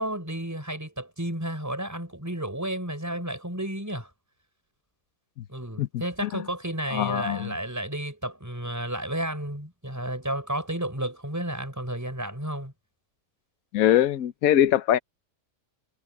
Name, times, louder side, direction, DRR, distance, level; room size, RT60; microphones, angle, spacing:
voice 1, 0.0-4.1 5.5-12.7, right 1 dB, 10° right, 6.6 m, -32 dB
voice 2, 5.8-6.4 6.9-7.5 13.7-15.0, left 11 dB, 65° left, 1.2 m, -23 dB
omnidirectional pair, 1.8 m